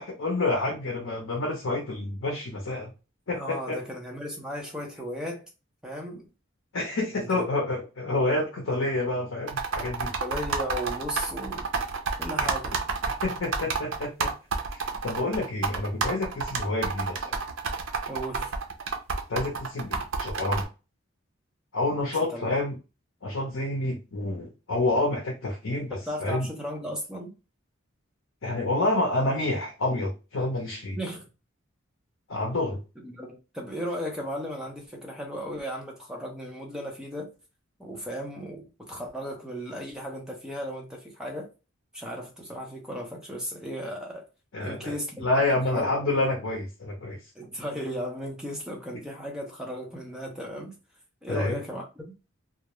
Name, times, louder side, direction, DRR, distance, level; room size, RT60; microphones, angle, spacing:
voice 1, 0.2-2.9 3.3-3.8 6.7-10.1 12.4-12.5 13.2-14.3 14.7-17.4 19.3-20.6 21.7-22.8 23.2-26.5 28.4-31.0 32.3-32.8 44.5-45.0 45.2-47.2 51.3-51.6, left 2 dB, 70° left, 0.6 m, -28 dB
voice 2, 3.3-5.4 5.8-6.3 7.1-7.7 8.1-8.2 10.2-11.7 12.2-12.8 18.1-18.5 22.1-22.5 25.9-27.3 30.9-31.3 33.0-37.3 37.8-41.5 41.9-44.2 44.6-46.2 47.3-50.7 51.2-52.1, equal, 5° right, 0.5 m, -36 dB
sound 1, 9.5-20.6, right 5 dB, 70° right, 0.5 m, -29 dB
2.3 x 2.1 x 2.9 m
head